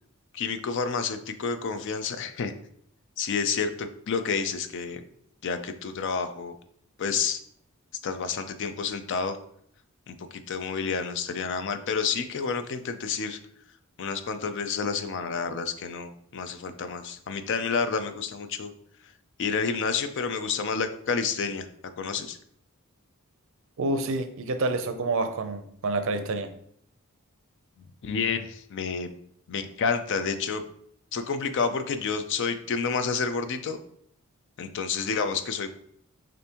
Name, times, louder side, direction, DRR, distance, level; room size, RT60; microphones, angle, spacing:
voice 1, 0.3-2.5 3.2-5.0 5.4-6.5 7.0-7.4 8.0-9.4 10.1-13.4 14.0-18.7 19.4-21.7 22.0-22.4 28.0-29.1 29.5-30.6 31.1-33.8 34.6-35.7, left 5 dB, 55° left, 0.4 m, -29 dB
voice 2, 23.8-26.5, right 2 dB, 60° right, 0.5 m, -28 dB
6.7 x 2.6 x 2.9 m
head